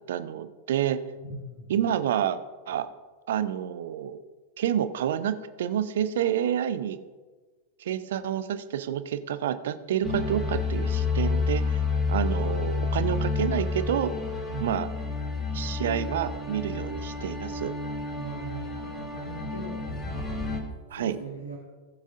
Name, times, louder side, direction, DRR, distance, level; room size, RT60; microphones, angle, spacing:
voice 1, 0.1-1.0 1.7-2.4 2.7-2.9 3.3-4.2 4.6-7.0 7.8-11.8 12.1-14.1 14.6-14.9 15.5-17.7 20.9-21.2, right 10 dB, 60° right, 11 dB, 0.7 m, -28 dB
voice 2, 1.3-1.7 14.5-14.7 18.1-20.3 21.0-21.6, right 3 dB, 90° left, -3 dB, 1.8 m, -39 dB
sound 1, 10.0-20.6, left 4 dB, 20° left, 2.7 m, -30 dB
18.5 x 7.4 x 2.7 m, 1.4 s
figure-of-eight pair, 90°, 0 cm